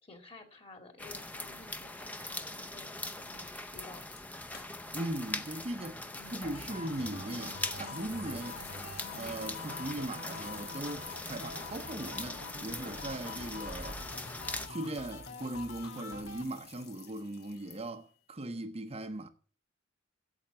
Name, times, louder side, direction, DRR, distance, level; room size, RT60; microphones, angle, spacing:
voice 1, 0.0-4.0 6.1-6.5, left 3 dB, 30° left, 2.1 m, -53 dB
sound 1, 1.0-14.7, left 2 dB, 10° left, 0.7 m, -42 dB
sound 2, 4.0-5.1 5.4-5.5 6.9-18.2, left 8 dB, 55° left, 1.2 m, -53 dB
voice 2, 4.9-6.0 6.3-8.6 9.1-14.0 14.7-19.3, right 1 dB, 30° right, 0.8 m, -39 dB
sound 3, 6.4-16.4, left 3 dB, 85° left, 1.7 m, -45 dB
8.8 x 7.9 x 9.2 m
head